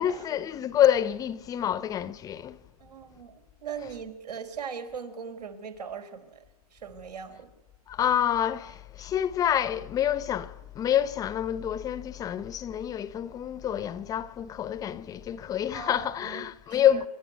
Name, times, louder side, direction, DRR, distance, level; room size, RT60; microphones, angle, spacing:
voice 1, 0.0-2.6 7.9-17.1, left 10 dB, 20° left, 0.7 m, -27 dB
voice 2, 2.8-6.4 6.7-7.5 15.7-17.0, right 6 dB, 85° right, 4.1 m, -40 dB
28.5 x 12.0 x 9.6 m
hypercardioid pair, 140°, 20 cm